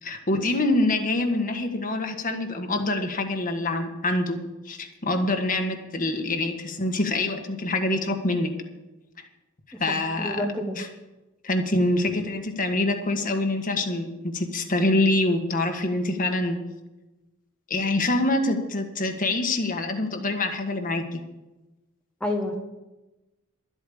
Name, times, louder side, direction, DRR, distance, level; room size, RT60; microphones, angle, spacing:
voice 1, 0.0-4.4 4.6-8.5 9.8-10.4 10.8-10.9 11.4-16.6 17.7-21.2, left 2 dB, 40° left, 5 dB, 1.5 m, -25 dB
voice 2, 10.2-10.8 22.2-22.6, left 1 dB, 5° left, 1 dB, 1.0 m, -28 dB
12.5 x 8.4 x 7.0 m, 1.1 s
head